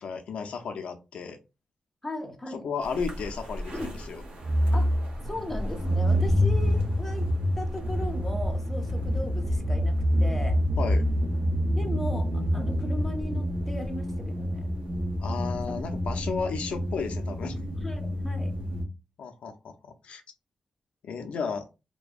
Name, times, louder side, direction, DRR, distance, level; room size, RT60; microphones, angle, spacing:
voice 1, 0.0-1.4 2.5-4.2 10.8-11.0 15.2-17.6 19.2-20.2 21.0-21.6, left 5 dB, 75° left, 0.4 m, -34 dB
voice 2, 2.0-2.7 3.7-3.9 4.7-4.9 5.2-10.6 11.7-14.7 15.7-15.8 17.8-18.5, left 1 dB, 10° left, 0.5 m, -37 dB
sound 1, 3.0-18.8, equal, 60° right, 0.8 m, -27 dB
2.6 x 2.1 x 2.3 m
wide cardioid pair, 150°, 2 cm